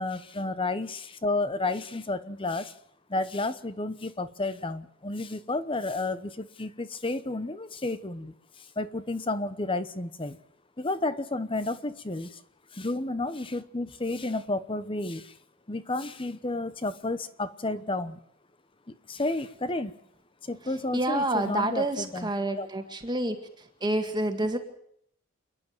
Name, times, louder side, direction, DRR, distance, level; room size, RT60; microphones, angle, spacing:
voice 1, 0.0-2.7 3.1-10.4 10.8-12.4 12.7-15.3 15.7-18.2 18.9-19.9 20.4-22.3 22.6-22.7, left 2 dB, 25° left, 13 dB, 1.0 m, -31 dB
voice 2, 20.9-23.4 23.8-24.6, right 1 dB, 20° right, 6 dB, 1.8 m, -28 dB
28.5 x 10.5 x 9.2 m, 0.69 s
head